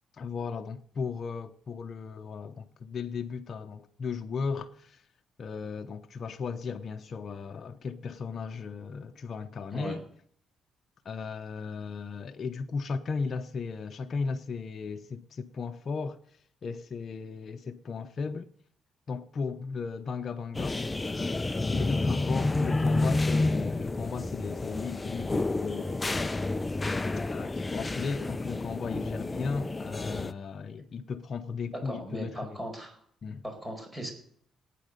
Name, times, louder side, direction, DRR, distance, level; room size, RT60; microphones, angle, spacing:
voice 1, 0.2-5.0 5.4-10.0 11.0-16.2 16.6-18.5 19.1-20.8 21.7-26.3 27.2-32.6 33.2-33.4, left 5 dB, 50° left, 0.9 m, -36 dB
sound 1, 20.5-30.3, left 2 dB, 20° left, 0.6 m, -30 dB
voice 2, 31.7-33.0 33.4-34.1, right 1 dB, 15° right, 5.2 m, -38 dB
19.0 x 9.3 x 6.7 m
cardioid pair, 90°, 0 cm